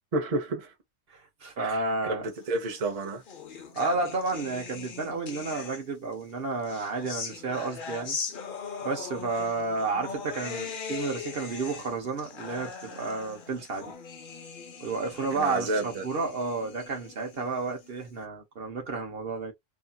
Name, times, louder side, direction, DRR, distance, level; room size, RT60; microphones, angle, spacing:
voice 1, 0.1-0.7 1.6-3.2 15.4-16.1, right 2 dB, 35° right, 0.8 m, -30 dB
voice 2, 1.1-2.2 3.7-8.2 8.8-13.9 14.8-19.5, right 3 dB, 55° right, 1.0 m, -31 dB
sound 1, 2.7-6.1 6.6-18.1, left 5 dB, 50° left, 0.7 m, -40 dB
2.8 x 2.6 x 2.3 m
omnidirectional pair, 1.3 m